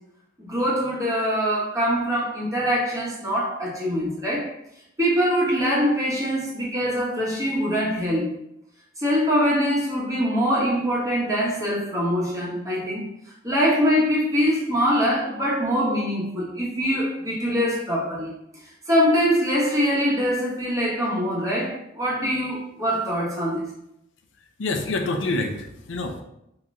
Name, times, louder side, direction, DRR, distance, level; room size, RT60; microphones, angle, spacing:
voice 1, 0.4-4.5 5.0-8.3 9.0-13.1 13.4-18.3 18.9-23.7, equal, 20° right, -6 dB, 1.3 m, -23 dB
voice 2, 24.6-26.2, left 2 dB, 75° left, 4 dB, 0.5 m, -27 dB
3.7 x 2.9 x 4.2 m, 0.81 s
head